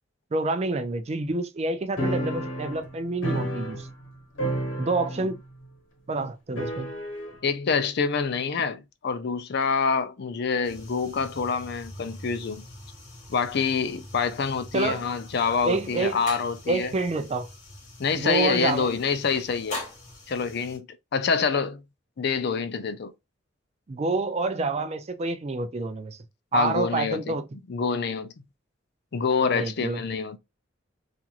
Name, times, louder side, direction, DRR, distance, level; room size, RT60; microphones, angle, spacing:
voice 1, 0.3-3.9 4.8-5.4 6.1-6.9 14.7-15.0 15.6-16.2 16.7-17.5 18.1-18.9 23.9-26.2 26.5-27.4 29.4-30.0, right 3 dB, 35° right, 0.4 m, -28 dB
sound 1, 2.0-4.1 4.4-5.4 5.6-5.7 6.6-7.4, right 1 dB, 90° left, 1.0 m, -30 dB
voice 2, 7.4-12.6 13.3-16.9 18.0-19.8 20.3-20.9 21.1-21.8 22.2-23.1 26.5-27.4 27.7-28.3 29.1-30.4, left 5 dB, 60° left, 0.5 m, -26 dB
sound 2, 10.6-20.8, left 2 dB, 40° left, 1.2 m, -43 dB
2.9 x 2.5 x 2.4 m
head